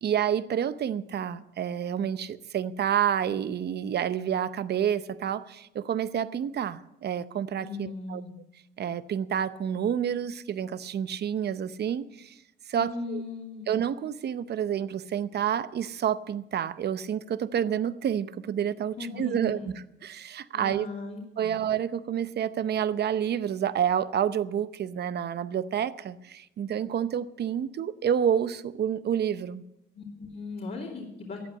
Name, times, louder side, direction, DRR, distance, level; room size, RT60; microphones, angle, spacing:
voice 1, 0.0-8.2 8.8-12.4 12.7-13.2 13.7-19.6 20.0-20.9 21.4-29.6, right 9 dB, 55° right, 14 dB, 0.8 m, -29 dB
voice 2, 7.6-8.3 12.7-13.7 19.0-19.7 20.5-21.6 29.9-31.5, left 3 dB, 50° left, -3 dB, 3.0 m, -38 dB
14.0 x 8.4 x 8.3 m, 0.89 s
cardioid pair, 90°, 20 cm